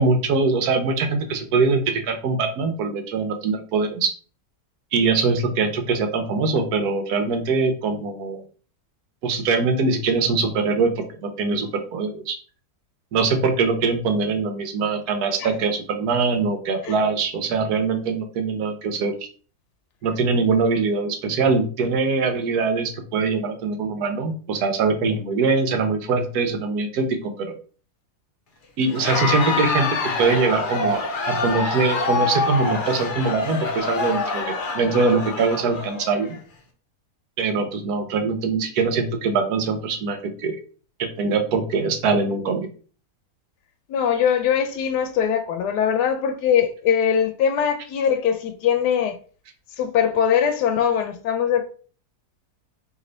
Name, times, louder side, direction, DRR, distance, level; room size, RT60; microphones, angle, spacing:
voice 1, 0.0-4.1 4.9-8.4 9.2-12.4 13.1-19.2 20.0-27.5 28.8-29.9 30.2-36.3 37.4-40.6 41.2-42.7, right 4 dB, 75° right, 1.2 m, -22 dB
Crowd, 28.9-36.4, left 3 dB, 50° left, 0.6 m, -26 dB
voice 2, 43.9-49.2 49.8-51.6, left 8 dB, 85° left, 1.2 m, -21 dB
3.2 x 3.1 x 3.9 m
omnidirectional pair, 1.7 m